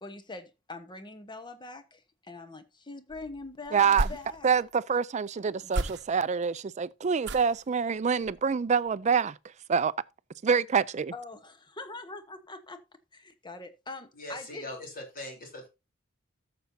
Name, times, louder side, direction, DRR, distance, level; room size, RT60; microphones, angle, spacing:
voice 1, 0.0-4.5 5.6-5.8 11.1-12.8 13.1-14.7, left 3 dB, 25° left, 1.1 m, -43 dB
sound 1, 3.1-4.8 5.7-6.4 7.2-7.7 8.2-8.5 8.9-9.0, right 2 dB, 60° right, 0.8 m, -35 dB
voice 2, 3.7-4.1 4.4-9.3 9.7-9.9 10.4-11.1, right 6 dB, 35° right, 0.4 m, -26 dB
voice 3, 14.1-15.7, left 1 dB, 45° left, 3.7 m, -41 dB
14.0 x 6.9 x 2.7 m
head